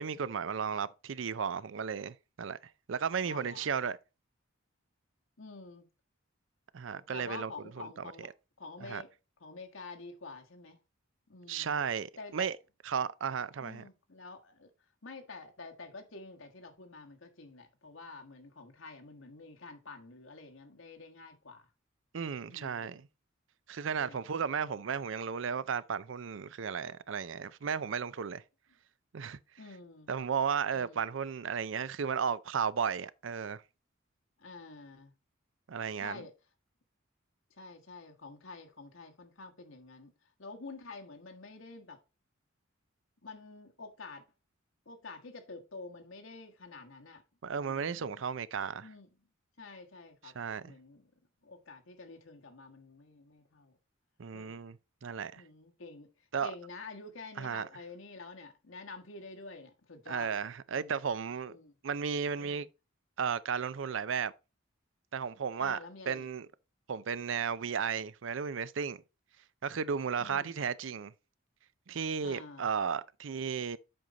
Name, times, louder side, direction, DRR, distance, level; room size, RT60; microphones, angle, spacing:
voice 1, 0.0-2.6 2.9-4.0 6.7-7.5 7.8-8.1 8.8-9.0 11.5-12.6 12.9-13.8 22.1-23.1 23.7-28.4 29.1-29.4 30.1-33.6 35.7-36.2 47.4-48.8 50.4-50.7 54.2-55.4 56.3-56.5 57.4-57.7 60.1-61.6 61.8-62.7 63.2-64.3 65.1-65.8 66.1-66.5 66.9-69.0 69.6-71.1 71.9-73.8, right 6 dB, 70° right, 0.5 m, -34 dB
voice 2, 3.2-3.7 5.4-5.9 7.1-8.3 8.6-9.1 9.4-10.8 11.3-11.8 12.2-12.5 13.6-14.7 15.0-21.7 22.5-23.0 24.0-24.2 29.6-30.1 30.7-31.0 34.4-35.1 36.0-36.3 37.6-40.1 40.4-42.0 43.2-44.2 44.8-47.2 47.6-48.2 48.8-49.1 49.6-51.1 51.4-53.8 54.3-54.6 55.3-56.1 56.4-60.3 60.7-61.0 61.5-61.7 62.3-62.7 65.6-66.3 70.2-70.5 72.2-72.7, left 3 dB, 80° left, 1.5 m, -48 dB
7.8 x 5.3 x 4.0 m
head